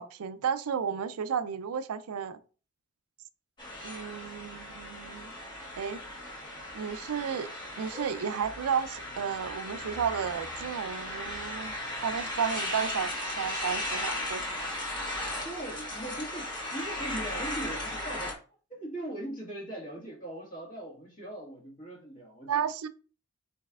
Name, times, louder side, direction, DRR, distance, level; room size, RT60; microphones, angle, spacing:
voice 1, 0.0-2.4 3.8-5.3 5.8-6.0 6.7-7.5 7.8-11.7 12.0-14.7 22.5-22.9, right 7 dB, 90° right, 0.4 m, -33 dB
sound 1, 3.6-18.3, left 1 dB, 20° left, 1.3 m, -36 dB
voice 2, 15.4-18.4 18.7-22.6, right 1 dB, 35° left, 1.7 m, -40 dB
5.4 x 4.1 x 2.4 m
head